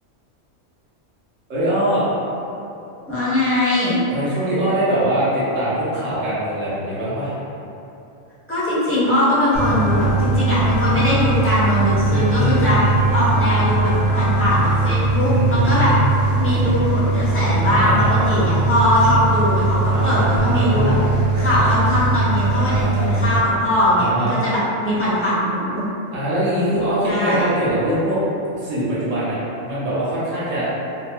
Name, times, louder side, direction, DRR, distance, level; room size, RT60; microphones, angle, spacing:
voice 1, 1.5-2.0 4.1-7.4 12.0-13.0 15.1-16.1 17.8-18.4 19.9-21.0 22.5-23.2 24.0-24.4 26.1-28.2 28.5-30.7, right 1 dB, 85° right, -10 dB, 1.2 m, -23 dB
voice 2, 3.1-4.0 8.5-12.8 13.1-15.9 16.4-21.0 21.4-25.8 27.0-27.5, left 1 dB, 15° left, -11 dB, 0.5 m, -20 dB
sound 1, 9.1-16.9, left 2 dB, 55° left, 0.7 m, -34 dB
sound 2, 9.5-23.4, right 2 dB, 65° right, 1.1 m, -20 dB
3.3 x 2.0 x 2.8 m, 2.8 s
omnidirectional pair, 1.3 m